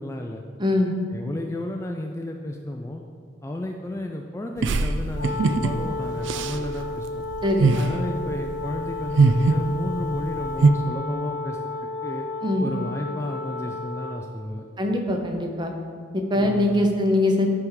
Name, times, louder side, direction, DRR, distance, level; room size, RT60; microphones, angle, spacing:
voice 1, 0.0-0.4 1.1-3.0 3.4-7.2 7.8-11.6 12.0-12.3 12.6-14.6 16.3-16.9, left 1 dB, 15° left, 2 dB, 0.3 m, -32 dB
voice 2, 0.6-0.9 7.4-7.8 12.4-12.7 14.8-15.7 16.1-17.5, left 1 dB, 25° right, 3 dB, 0.7 m, -22 dB
sound 1, 4.6-10.7, right 3 dB, 70° right, 0.4 m, -23 dB
Wind instrument woodwind instrument, 5.1-14.3, left 3 dB, 60° left, 1.1 m, -32 dB
9.9 x 3.5 x 6.3 m, 2.2 s
head